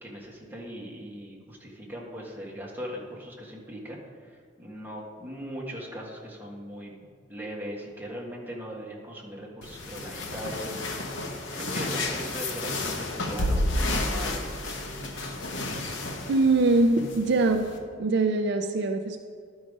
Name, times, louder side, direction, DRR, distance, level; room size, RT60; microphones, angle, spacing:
voice 1, 0.0-11.2 11.5-15.3, equal, 10° right, -4 dB, 1.6 m, -39 dB
sound 1, 9.6-17.8, left 2 dB, 70° left, 1.0 m, -31 dB
voice 2, 16.3-17.7 18.0-19.2, right 3 dB, 60° right, 6 dB, 0.4 m, -23 dB
11.5 x 4.9 x 5.2 m, 2.1 s
head